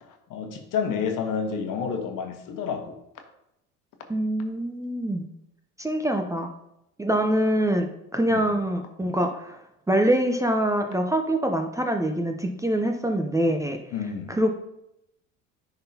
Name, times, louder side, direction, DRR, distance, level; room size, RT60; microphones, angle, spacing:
voice 1, 0.1-3.0 8.3-8.5 13.9-14.3, left 6 dB, 55° left, 5 dB, 1.2 m, -30 dB
voice 2, 4.1-5.3 5.8-6.5 7.0-9.6 9.9-13.8 14.3-14.5, right 1 dB, 10° right, 4 dB, 0.7 m, -24 dB
10.0 x 4.0 x 2.9 m, 0.83 s
hypercardioid pair, 75°, 37 cm